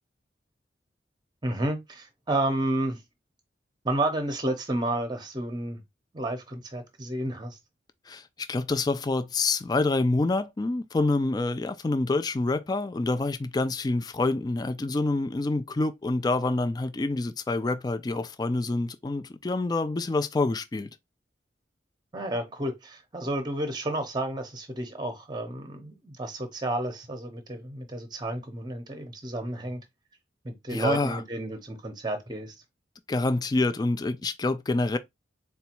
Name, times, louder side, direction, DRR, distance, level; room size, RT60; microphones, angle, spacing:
voice 1, 1.4-3.0 3.8-5.8 6.1-7.6 22.1-29.8 30.4-32.5, right 1 dB, 25° right, 0.7 m, -31 dB
voice 2, 8.1-20.9 30.7-31.2 33.1-35.0, left 2 dB, 20° left, 0.3 m, -27 dB
4.0 x 2.3 x 4.4 m
head